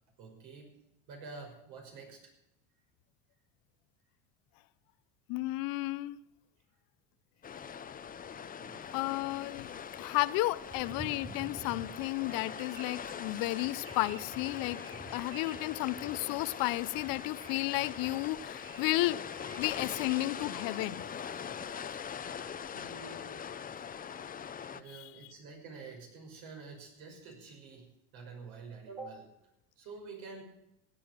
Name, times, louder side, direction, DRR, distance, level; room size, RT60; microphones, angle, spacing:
voice 1, 0.2-0.8 1.1-2.3 8.6-8.8 22.1-22.4 22.7-23.4 23.7-23.8 24.7-29.3 29.8-30.4, right 4 dB, 70° right, 5.8 m, -48 dB
voice 2, 5.3-6.2 8.9-9.7 10.0-14.8 15.1-19.2 19.6-21.0 24.9-25.0, left 19 dB, 60° left, 0.7 m, -33 dB
sound 1, 7.4-24.8, left 7 dB, 25° left, 0.7 m, -42 dB
sound 2, 8.8-22.2, right 3 dB, 20° right, 3.9 m, -52 dB
16.0 x 9.3 x 7.5 m
supercardioid pair, 110°, 38 cm